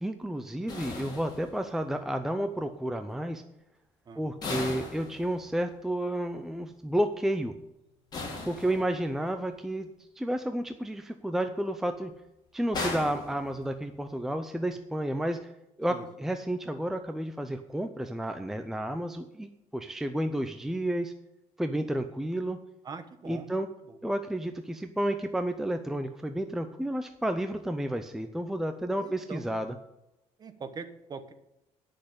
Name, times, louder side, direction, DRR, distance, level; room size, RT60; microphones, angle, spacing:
voice 1, 0.0-3.4 4.2-7.5 8.5-9.9 10.2-12.1 12.5-15.5 15.8-21.1 21.6-22.6 23.3-23.7 24.0-29.7, right 1 dB, 5° right, 7 dB, 0.6 m, -31 dB
sound 1, 0.7-2.0 4.4-5.8 8.1-9.3 12.7-14.1, left 3 dB, 30° left, 3.2 m, -38 dB
voice 2, 8.6-8.9 15.9-16.1 22.8-23.5 23.9-24.0 29.0-29.6 30.4-31.3, right 5 dB, 30° right, 9 dB, 1.1 m, -42 dB
9.9 x 6.5 x 8.5 m, 0.88 s
cardioid pair, 155°, 13 cm